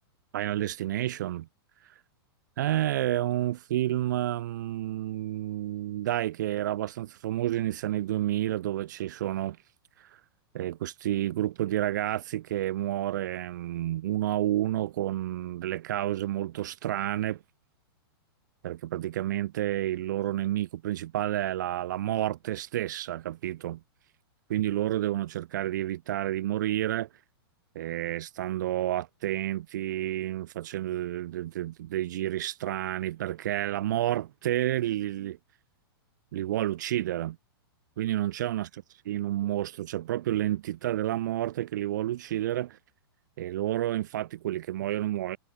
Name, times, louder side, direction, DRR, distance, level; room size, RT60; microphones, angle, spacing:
voice 1, 0.3-1.5 1.8-1.9 2.6-9.6 10.0-10.2 10.5-17.4 18.6-23.8 24.5-27.1 27.7-35.4 36.3-37.4 38.0-38.7 39.1-42.8 43.4-45.4, right 13 dB, 45° right, 0.4 m, -30 dB
supercardioid pair, 175°, 13 cm